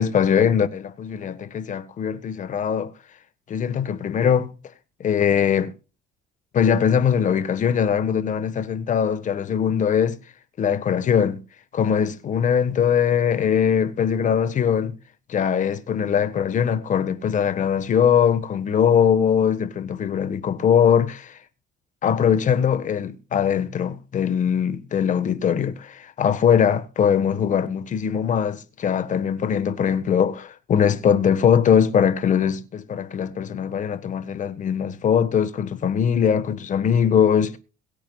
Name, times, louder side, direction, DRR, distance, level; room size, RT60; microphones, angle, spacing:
voice 1, 0.0-2.9 3.5-4.5 5.0-5.7 6.5-10.2 10.6-11.4 11.7-14.9 15.3-21.4 22.0-37.6, left 8 dB, 50° left, 1.5 m, -21 dB
22.5 x 8.9 x 2.4 m
cardioid pair, 110°, 17 cm